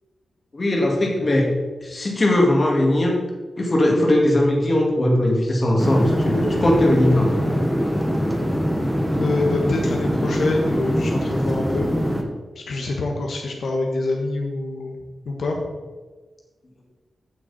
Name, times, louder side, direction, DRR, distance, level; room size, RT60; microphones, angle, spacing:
voice 1, 0.5-1.5 1.8-3.2 3.6-7.3, left 1 dB, 30° left, -1 dB, 2.2 m, -19 dB
sound 1, 5.8-12.2, equal, ahead, 1.2 m, -23 dB
voice 2, 9.2-11.9 12.5-15.0 15.2-15.7, left 2 dB, 70° left, 0 dB, 1.4 m, -25 dB
15.0 x 6.3 x 4.2 m, 1.3 s
wide cardioid pair, 165°, 0 cm